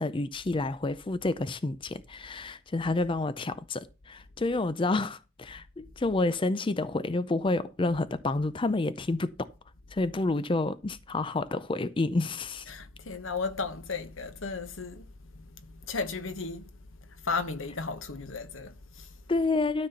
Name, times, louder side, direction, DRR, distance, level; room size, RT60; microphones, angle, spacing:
voice 1, 0.0-9.5 9.9-12.7 19.3-19.9, left 2 dB, 25° left, 0.5 m, -29 dB
voice 2, 12.7-19.2, left 4 dB, 85° left, 1.2 m, -35 dB
12.5 x 4.2 x 6.9 m
head